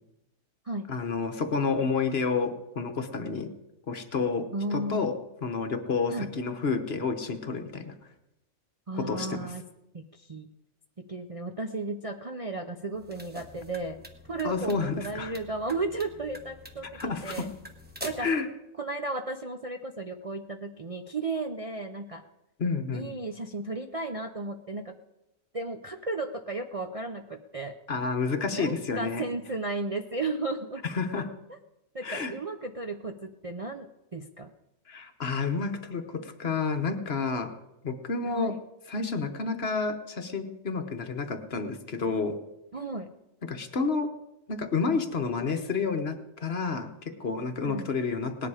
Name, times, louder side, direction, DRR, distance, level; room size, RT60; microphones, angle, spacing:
voice 1, 0.9-3.5 3.9-5.1 5.4-7.9 8.9-9.5 14.4-15.3 16.9-17.5 18.2-18.5 22.6-23.1 27.9-29.2 30.8-31.3 32.0-32.3 34.9-37.5 37.8-38.6 38.9-42.4 43.4-44.1 44.5-48.5, left 4 dB, 50° left, 7 dB, 1.2 m, -30 dB
voice 2, 4.5-5.1 6.1-6.3 8.9-9.6 9.9-10.5 11.0-14.0 14.3-17.5 18.0-18.3 18.8-22.2 22.9-24.9 25.5-27.7 28.5-30.8 31.9-34.5 38.3-38.6 42.7-43.1 47.6-47.9, right 2 dB, 35° right, 4 dB, 0.6 m, -34 dB
sound 1, 12.9-18.4, equal, 10° right, 1.1 m, -45 dB
18.5 x 10.5 x 4.9 m, 0.95 s
omnidirectional pair, 1.4 m